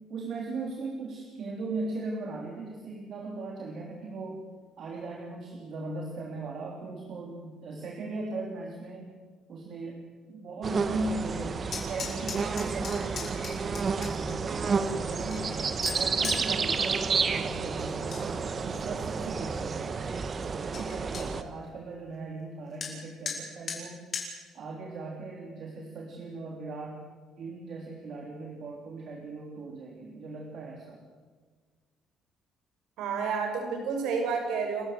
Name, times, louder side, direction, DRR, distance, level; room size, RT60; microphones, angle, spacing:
voice 1, 0.1-4.4 4.8-9.1 9.5-10.0 10.3-11.6 11.9-15.7 15.9-20.0 20.5-24.1 24.5-31.0, right 3 dB, 50° right, 0 dB, 3.3 m, -38 dB
sound 1, 10.6-21.4, right 5 dB, 30° right, 1.2 m, -30 dB
sound 2, 11.7-14.3 14.9-16.4 17.8-18.2 18.6-19.1 19.6-19.7 20.0-20.1 20.4-20.5 20.7-21.2 22.8-22.9 23.2-23.4 23.7-23.8 24.1-24.3, left 5 dB, 40° left, 5.9 m, -37 dB
voice 2, 33.0-34.9, right 5 dB, 85° right, 4 dB, 5.9 m, -30 dB
29.5 x 14.5 x 7.9 m, 1.5 s
cardioid pair, 140°, 0 cm